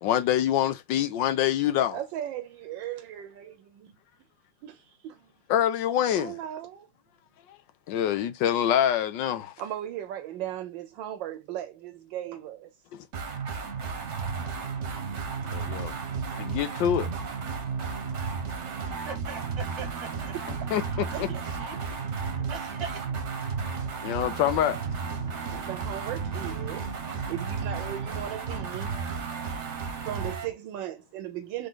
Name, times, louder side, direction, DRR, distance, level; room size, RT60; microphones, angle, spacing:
voice 1, 0.0-2.0 5.5-6.3 7.9-9.5 12.9-13.0 15.5-15.9 16.4-17.1 20.7-20.8 24.0-24.8, left 10 dB, 90° left, 1.4 m, -25 dB
voice 2, 1.9-4.0 4.6-5.3 6.1-6.9 9.6-12.7 21.1-21.6 25.3-26.9 27.3-29.0 29.5-29.7 30.0-31.7, right 11 dB, 85° right, 1.4 m, -37 dB
sound 1, 13.1-30.5, right 5 dB, 50° right, 1.0 m, -33 dB
voice 3, 19.0-20.3 20.9-21.8 22.3-23.1, right 6 dB, 20° right, 0.9 m, -41 dB
4.0 x 3.3 x 3.8 m
omnidirectional pair, 2.0 m